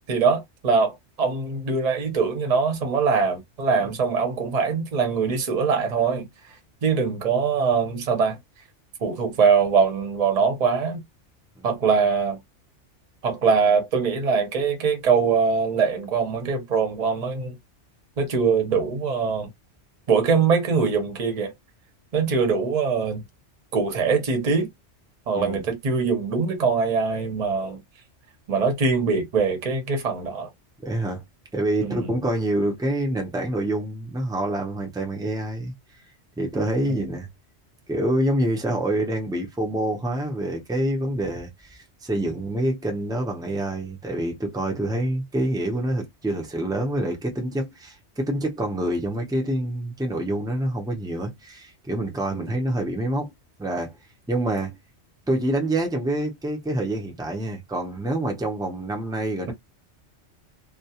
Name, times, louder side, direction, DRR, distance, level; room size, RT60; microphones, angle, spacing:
voice 1, 0.1-6.2 6.8-8.4 9.0-11.0 11.6-12.4 13.2-17.5 18.2-19.5 20.1-21.5 22.1-23.2 23.7-24.7 25.3-27.8 28.5-30.5 31.8-32.1 36.9-37.0 52.3-52.5, right 5 dB, 40° right, 0.7 m, -22 dB
voice 2, 25.3-25.7 30.8-31.2 31.5-35.7 36.4-37.3 37.9-53.3 53.6-53.9 54.3-54.7 55.3-59.5, right 1 dB, 5° right, 0.4 m, -26 dB
2.3 x 2.2 x 2.8 m
omnidirectional pair, 1.2 m